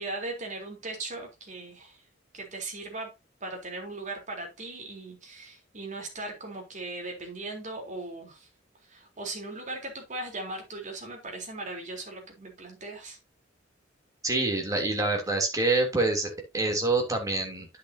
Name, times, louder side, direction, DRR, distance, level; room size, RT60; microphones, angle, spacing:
voice 1, 0.0-2.0 2.3-3.1 3.4-8.5 8.9-13.2, right 2 dB, 40° right, 3.8 m, -38 dB
voice 2, 14.2-17.7, right 2 dB, 15° right, 3.2 m, -26 dB
10.0 x 8.4 x 2.8 m
head